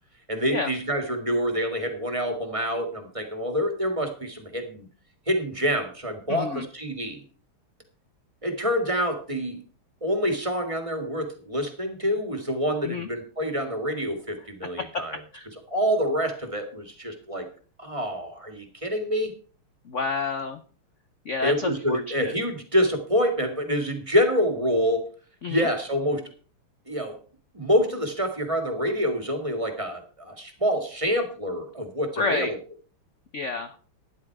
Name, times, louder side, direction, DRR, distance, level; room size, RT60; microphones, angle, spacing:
voice 1, 0.3-4.9 5.3-7.2 8.4-9.6 10.0-15.1 15.7-17.5 17.8-19.3 21.4-25.1 25.5-26.3 26.9-27.2 27.5-32.6, equal, 15° right, 6 dB, 1.8 m, -26 dB
voice 2, 6.3-6.7 12.8-13.1 14.8-15.0 15.3-15.5 19.8-20.6 21.2-22.3 25.4-25.7 32.2-32.5 33.3-33.7, left 4 dB, 75° left, 9 dB, 0.6 m, -29 dB
12.5 x 10.0 x 4.6 m, 0.41 s
omnidirectional pair, 2.4 m